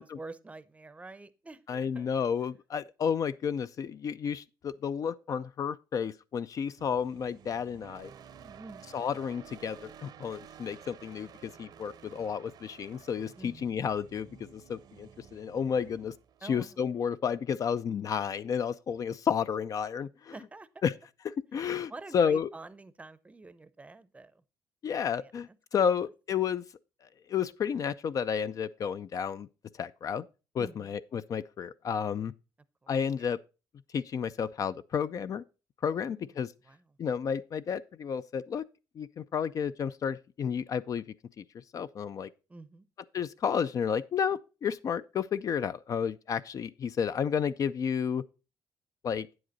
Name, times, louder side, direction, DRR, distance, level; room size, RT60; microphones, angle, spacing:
voice 1, 0.0-2.1 8.4-8.9 13.4-13.8 16.4-16.8 20.3-20.8 21.5-24.4 25.2-25.3 25.7-25.8 30.6-31.0 32.8-32.9 33.2-33.3 36.0-36.4 36.6-36.9 42.5-42.9, right 3 dB, 15° right, 0.6 m, -48 dB
voice 2, 1.7-8.1 8.9-16.1 16.4-20.3 20.8-20.9 21.2-22.5 24.8-26.6 27.3-29.5 29.8-30.3 30.5-32.3 32.9-33.4 33.9-35.4 35.8-36.5 37.0-38.6 39.0-41.0 41.4-41.5 41.7-42.3 43.1-48.2 49.0-49.3, left 7 dB, 45° left, 0.4 m, -31 dB
sound 1, 6.8-17.1, right 8 dB, 60° right, 0.7 m, -53 dB
8.8 x 7.8 x 4.0 m
cardioid pair, 110°, 8 cm